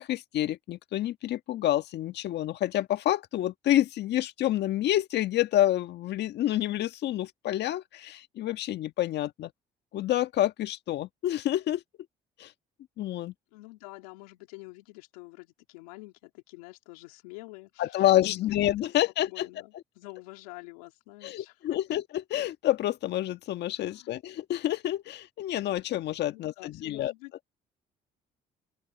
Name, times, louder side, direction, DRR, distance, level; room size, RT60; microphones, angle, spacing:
voice 1, 0.0-9.5 9.9-11.8 12.4-12.5 13.0-13.3 17.8-19.5 21.2-27.1, left 13 dB, 65° left, 1.5 m, -28 dB
voice 2, 13.5-18.6 19.3-21.8 23.8-24.1 26.3-27.3, left 24 dB, 90° left, 3.3 m, -47 dB
open air
supercardioid pair, 65°, 19 cm